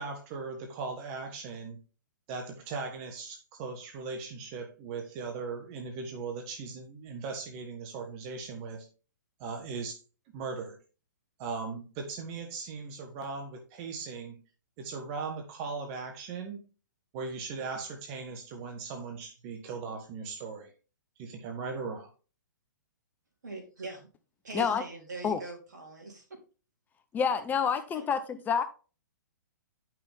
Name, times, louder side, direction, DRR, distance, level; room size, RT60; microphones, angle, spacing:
voice 1, 0.0-1.8 2.3-8.9 9.4-10.0 10.3-10.8 11.4-14.4 14.8-16.6 17.1-20.7 21.2-22.1, right 4 dB, 35° right, 1.4 m, -38 dB
voice 2, 23.4-24.1 24.4-26.4 27.9-28.1, right 2 dB, 65° right, 3.5 m, -42 dB
voice 3, 27.1-28.6, left 6 dB, 15° left, 0.6 m, -28 dB
10.5 x 6.0 x 3.6 m
figure-of-eight pair, 120°, 10 cm